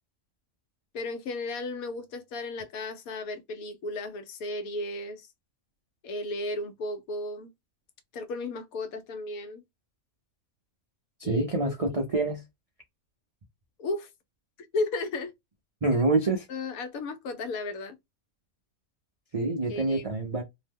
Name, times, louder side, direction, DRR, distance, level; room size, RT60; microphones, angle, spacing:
voice 1, 0.9-5.3 6.0-7.5 8.1-9.6 11.2-12.0 13.8-14.1 14.7-15.3 15.9-16.0 16.5-18.0 19.7-20.4, left 2 dB, 80° left, 1.1 m, -34 dB
voice 2, 11.2-12.4 15.8-16.5 19.3-20.4, right 2 dB, 60° right, 0.3 m, -26 dB
2.8 x 2.1 x 3.5 m
omnidirectional pair, 1.5 m